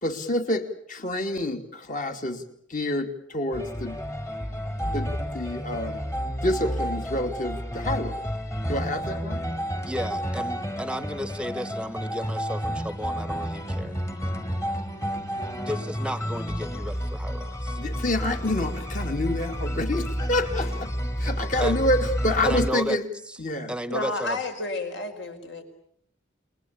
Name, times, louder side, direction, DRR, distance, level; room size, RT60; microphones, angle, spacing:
voice 1, 0.0-2.4 2.7-4.0 4.9-6.0 6.4-8.2 8.7-9.4 17.8-20.9 21.2-23.1 23.4-23.7, left 1 dB, 40° left, 6 dB, 2.7 m, -28 dB
sound 1, 3.5-22.7, equal, 15° left, 1.8 m, -30 dB
voice 2, 9.8-14.0 15.6-17.8 21.6-21.8 22.4-23.0 23.3-23.4 23.7-24.4, equal, 5° right, 14 dB, 1.2 m, -33 dB
voice 3, 23.9-25.6, left 2 dB, 60° left, 6 dB, 5.0 m, -31 dB
29.5 x 21.0 x 8.7 m, 0.68 s
head